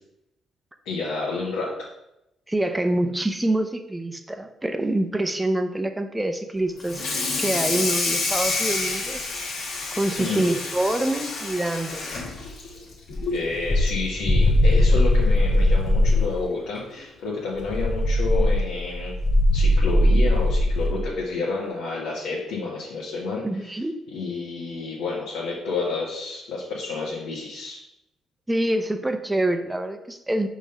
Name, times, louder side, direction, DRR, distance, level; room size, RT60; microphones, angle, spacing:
voice 1, 0.8-1.7 10.2-10.5 13.3-19.1 19.5-23.4 24.1-27.8, left 4 dB, 90° left, -6 dB, 1.4 m, -30 dB
voice 2, 2.5-7.0 7.4-9.3 9.9-12.2 23.4-23.9 28.5-30.5, right 1 dB, 10° right, 7 dB, 0.7 m, -26 dB
Water tap faucet / Sink (filling or washing), 6.8-13.5 13.9-14.1 14.5-14.6 15.0-15.1 16.2-16.3 16.7-17.0, left 3 dB, 70° left, 1.8 m, -29 dB
sound 1, 13.1-16.4 17.6-21.0, left 1 dB, 30° left, 0.8 m, -20 dB
5.3 x 3.7 x 5.3 m, 0.86 s
cardioid pair, 90°, 0 cm